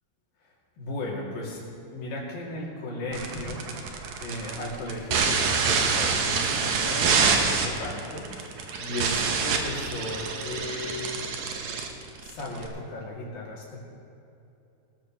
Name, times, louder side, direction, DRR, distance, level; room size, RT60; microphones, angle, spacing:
voice 1, 0.8-3.7 4.2-11.2 12.3-13.9, left 1 dB, 65° left, -4 dB, 4.2 m, -35 dB
sound 1, 3.1-12.7, right 5 dB, 65° right, 2.0 m, -26 dB
20.0 x 13.0 x 3.1 m, 2.8 s
omnidirectional pair, 4.4 m